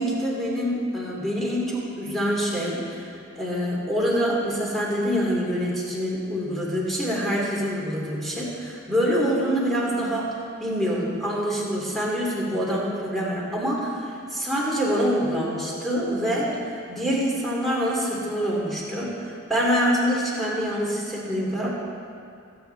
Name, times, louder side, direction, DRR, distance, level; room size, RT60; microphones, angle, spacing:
voice 1, 0.0-10.3 10.6-21.7, equal, ahead, -6 dB, 2.8 m, -25 dB
23.5 x 9.1 x 3.5 m, 2.4 s
head